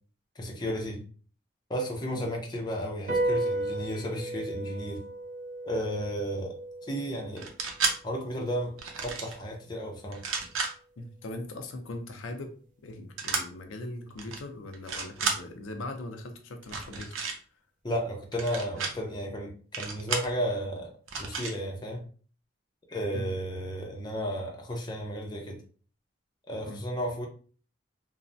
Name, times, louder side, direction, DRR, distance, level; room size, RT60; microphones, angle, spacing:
voice 1, 0.4-1.0 1.7-5.0 5.6-7.5 8.0-8.8 9.0-10.2 17.8-22.0 22.9-25.6 26.5-27.3, equal, 20° left, 0.5 m, -33 dB
sound 1, 3.1-9.8, right 2 dB, 40° right, 0.5 m, -35 dB
sound 2, 7.4-8.0 8.8-9.3 10.1-10.7 13.2-13.4 14.2-14.4 14.7-15.4 16.6-17.4 18.3-18.9 19.7-20.3 21.1-21.5, right 5 dB, 85° right, 0.6 m, -31 dB
voice 2, 11.0-12.5 12.8-17.2 23.1-23.3 26.7-26.8, left 2 dB, 85° left, 0.5 m, -40 dB
3.1 x 2.0 x 2.5 m
head